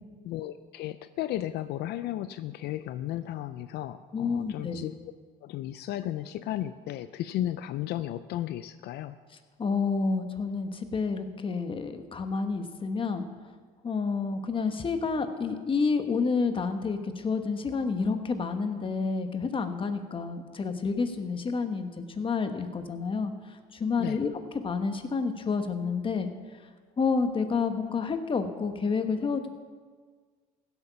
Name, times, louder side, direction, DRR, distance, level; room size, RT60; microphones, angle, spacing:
voice 1, 0.2-4.9 5.4-9.2 24.0-24.2, left 13 dB, 75° left, 12 dB, 0.4 m, -34 dB
voice 2, 4.1-4.8 9.6-13.3 13.8-24.3 24.6-26.3 27.0-29.5, left 4 dB, 30° left, 8 dB, 1.2 m, -29 dB
16.0 x 8.2 x 5.7 m, 1.6 s
cardioid pair, 110°, 17 cm